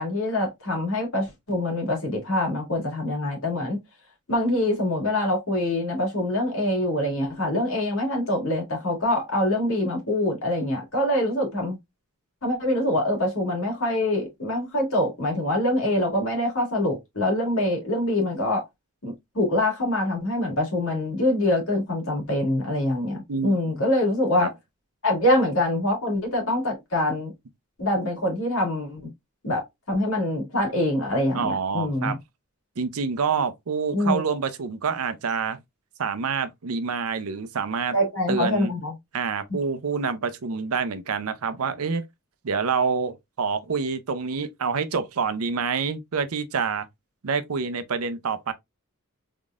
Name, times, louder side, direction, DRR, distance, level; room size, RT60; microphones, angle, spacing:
voice 1, 0.0-3.8 4.3-11.8 12.4-18.6 19.0-24.5 25.0-27.3 27.8-29.0 29.4-32.2 33.9-34.2 37.9-38.9, left 1 dB, 65° left, 2.1 m, -25 dB
voice 2, 31.3-32.2 32.8-35.6 36.0-38.0 38.3-38.7 39.1-42.0 42.4-46.9 47.2-48.5, right 5 dB, 80° right, 0.6 m, -27 dB
3.7 x 3.7 x 2.4 m
head